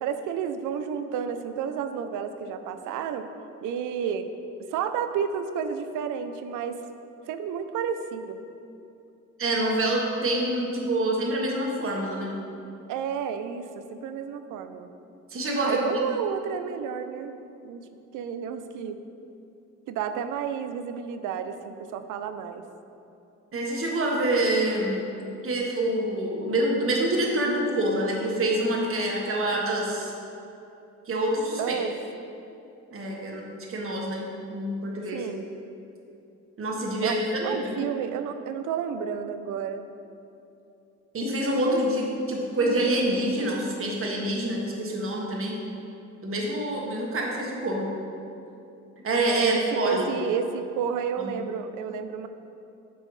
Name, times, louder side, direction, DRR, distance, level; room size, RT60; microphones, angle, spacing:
voice 1, 0.0-3.3 3.6-4.3 4.7-6.8 7.3-8.4 12.9-14.9 15.6-17.3 17.6-17.8 18.1-19.0 19.9-22.6 31.6-31.9 35.1-35.5 37.0-39.9 49.4-52.3, right 7 dB, 85° right, 9 dB, 0.5 m, -31 dB
voice 2, 9.4-12.3 15.3-15.8 23.5-25.0 25.4-30.1 31.1-31.7 32.9-35.2 36.6-37.9 41.1-45.6 46.2-47.9 49.0-50.1 51.2-51.3, right 1 dB, 45° right, -2 dB, 1.4 m, -26 dB
8.4 x 5.5 x 3.2 m, 2.8 s
cardioid pair, 90°, 30 cm